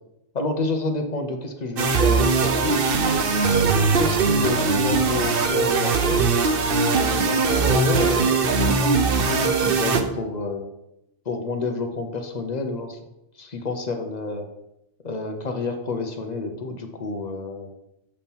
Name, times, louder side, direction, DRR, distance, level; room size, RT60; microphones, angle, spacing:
voice 1, 0.3-2.8 3.4-6.3 6.9-10.7 11.2-13.0 13.4-14.5 15.0-17.7, left 3 dB, 40° left, 4 dB, 0.9 m, -29 dB
sound 1, 1.8-10.0, right 4 dB, 55° right, 0.8 m, -20 dB
7.4 x 4.3 x 5.5 m, 0.86 s
omnidirectional pair, 1.3 m